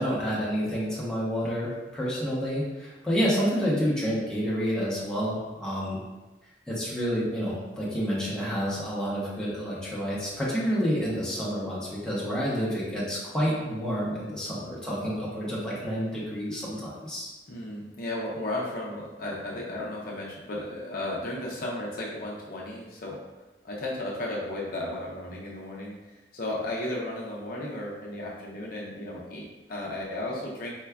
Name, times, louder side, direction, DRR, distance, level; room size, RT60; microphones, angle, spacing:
voice 1, 0.0-6.0 6.7-17.3, equal, 5° left, -8 dB, 0.7 m, -29 dB
voice 2, 17.5-23.2 23.6-30.7, left 1 dB, 50° left, -4 dB, 0.5 m, -34 dB
4.4 x 2.2 x 2.3 m, 1.1 s
head